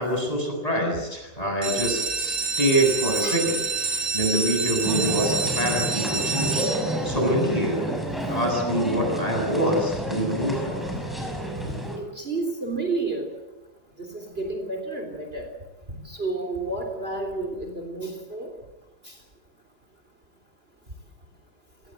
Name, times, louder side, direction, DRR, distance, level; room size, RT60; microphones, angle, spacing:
voice 1, 0.0-7.9 8.3-10.9, equal, 20° left, 2 dB, 7.9 m, -26 dB
sound 1, 1.5-7.2 7.9-8.3 8.7-8.8 9.1-9.2 9.6-9.7, right 4 dB, 55° right, 4.5 m, -28 dB
sound 2, 4.8-12.0, right 1 dB, ahead, 5.9 m, -30 dB
voice 2, 11.6-13.3 14.0-15.5 15.9-18.5 19.0-19.1, right 3 dB, 35° right, 4 dB, 3.8 m, -31 dB
29.0 x 19.0 x 7.9 m, 1.1 s
omnidirectional pair, 1.8 m